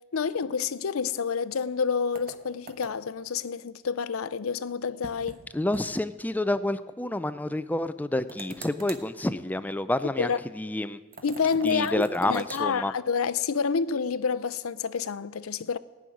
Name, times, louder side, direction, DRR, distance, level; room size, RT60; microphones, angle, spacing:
voice 1, 0.1-5.4 10.2-10.4 11.2-15.8, left 6 dB, 85° left, 0.5 m, -28 dB
sound 1, 2.1-3.2 5.0-5.4 5.7-5.9 6.2-6.3 8.3-9.1 11.1-12.7, right 3 dB, 45° right, 1.2 m, -43 dB
voice 2, 5.5-11.0 11.6-12.9, left 1 dB, 10° left, 0.4 m, -29 dB
18.5 x 6.3 x 9.3 m
head